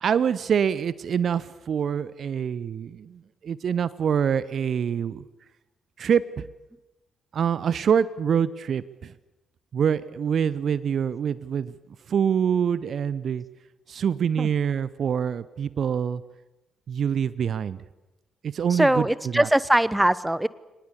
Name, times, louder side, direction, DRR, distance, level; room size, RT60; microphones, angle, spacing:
voice 1, 0.0-5.2 6.0-6.5 7.3-9.1 9.7-11.7 12.1-13.4 13.9-16.2 16.9-17.8 18.4-19.0 19.3-19.5, right 7 dB, 50° right, 18 dB, 0.8 m, -25 dB
voice 2, 18.7-20.5, right 1 dB, 5° right, 19 dB, 0.9 m, -21 dB
24.0 x 19.5 x 8.5 m, 1.0 s
figure-of-eight pair, 40°, 0 cm